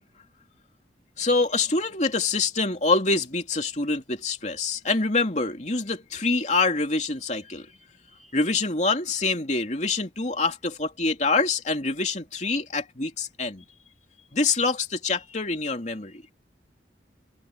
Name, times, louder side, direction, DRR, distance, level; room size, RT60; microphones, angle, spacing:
voice 1, 1.2-7.7 8.3-13.6 14.3-16.2, left 3 dB, 40° left, 3.1 m, -25 dB
head